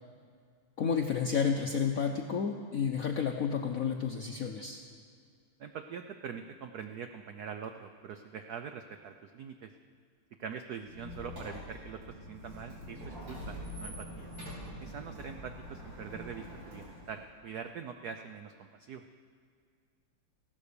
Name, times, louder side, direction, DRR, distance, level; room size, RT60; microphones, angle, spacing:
voice 1, 0.8-4.8, left 6 dB, 70° left, 3 dB, 0.8 m, -31 dB
voice 2, 5.6-9.7 10.4-14.3 14.8-19.0, right 7 dB, 80° right, 7 dB, 0.8 m, -43 dB
Squeak, 10.8-17.3, equal, 55° right, 5.1 m, -45 dB
16.0 x 11.5 x 6.8 m, 2.2 s
omnidirectional pair, 2.4 m